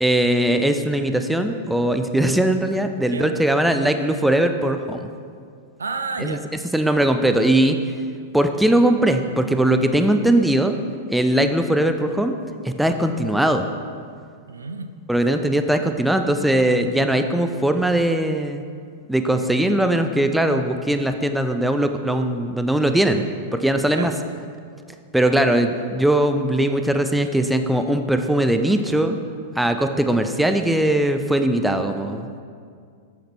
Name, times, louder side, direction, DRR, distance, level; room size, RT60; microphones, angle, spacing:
voice 1, 0.0-5.1 6.2-6.4 6.7-7.8 8.3-10.7 11.1-12.3 12.6-13.7 15.1-18.6 19.1-23.2 23.5-24.1 25.1-29.2 29.6-32.3, right 1 dB, 5° right, 7 dB, 0.4 m, -20 dB
voice 2, 5.8-6.4 14.5-14.9 23.9-24.2, right 4 dB, 80° right, 9 dB, 0.4 m, -30 dB
8.4 x 5.8 x 4.3 m, 2.2 s
figure-of-eight pair, 100°, 0 cm